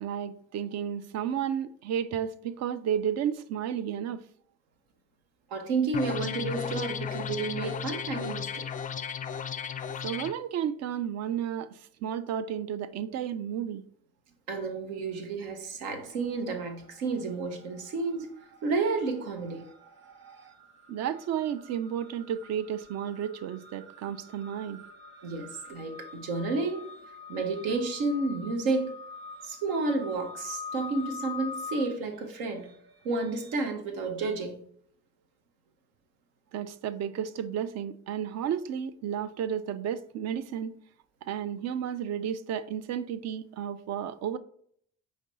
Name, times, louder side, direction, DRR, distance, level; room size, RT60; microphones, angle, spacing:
voice 1, 0.0-4.2 10.0-13.8 20.9-24.8 36.5-40.8 41.2-44.4, right 9 dB, 50° right, 0.4 m, -32 dB
voice 2, 5.5-8.7 14.5-18.3 18.6-19.6 25.2-26.9 27.3-29.0 29.4-32.7 33.0-34.6, right 3 dB, 80° right, 0.8 m, -31 dB
sound 1, 5.9-10.3, left 7 dB, 25° left, 0.3 m, -35 dB
sound 2, 16.0-16.7 16.9-33.5, left 4 dB, 35° right, 0.8 m, -46 dB
5.0 x 3.1 x 2.7 m
hypercardioid pair, 55°, 33 cm